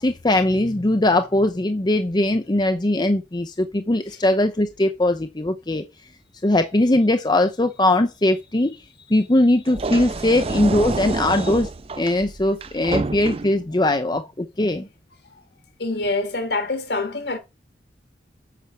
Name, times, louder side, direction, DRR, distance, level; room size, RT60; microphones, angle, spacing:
voice 1, 0.0-5.8 6.4-11.7 12.0-14.9, left 1 dB, 25° left, 0.6 m, -20 dB
sound 1, 9.7-13.7, right 3 dB, 30° right, 0.4 m, -28 dB
voice 2, 15.8-17.4, left 2 dB, 65° left, 1.7 m, -25 dB
8.3 x 6.1 x 5.8 m
head